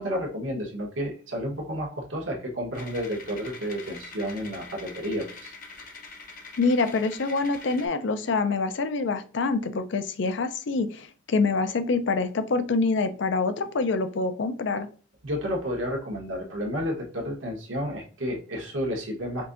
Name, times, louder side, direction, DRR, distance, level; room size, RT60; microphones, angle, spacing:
voice 1, 0.0-5.5 5.8-5.9 15.2-19.4, equal, 75° right, 0 dB, 1.2 m, -31 dB
sound 1, 2.7-7.9, left 4 dB, 45° left, 0.8 m, -44 dB
voice 2, 6.6-14.9, left 3 dB, 60° left, 9 dB, 0.4 m, -26 dB
5.2 x 2.7 x 2.5 m, 0.39 s
head